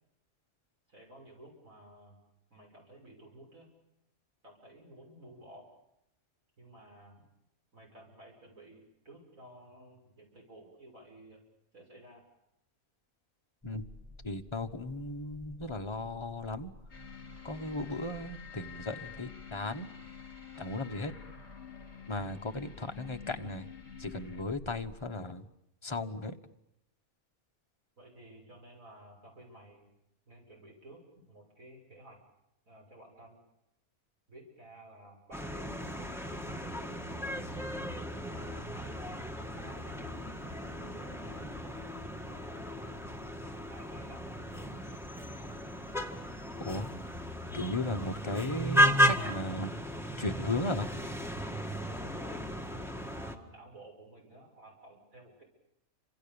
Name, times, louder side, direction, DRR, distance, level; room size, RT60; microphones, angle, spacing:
voice 1, 0.9-2.2 2.5-3.7 4.4-5.7 6.6-7.2 7.7-11.4 11.7-12.2 28.0-29.9 30.3-32.2 32.7-33.4 34.3-37.5 38.1-40.2 40.8-41.7 42.1-42.7 43.4-45.0 52.0-52.4 52.9-55.4, right 1 dB, 65° right, 0 dB, 7.3 m, -54 dB
sound 1, 13.6-25.0, left 1 dB, 20° right, 8.0 m, -54 dB
voice 2, 14.2-16.7 17.4-19.9 20.6-21.1 22.1-23.7 24.0-25.5 25.8-26.3 46.6-46.9 47.5-49.7 50.2-50.9, left 2 dB, 20° left, 5 dB, 1.2 m, -36 dB
sound 2, 16.9-24.5, left 8 dB, 50° left, 2.6 m, -49 dB
sound 3, 35.3-53.4, equal, ahead, 1.7 m, -34 dB
29.0 x 26.5 x 7.1 m, 0.84 s
omnidirectional pair, 1.5 m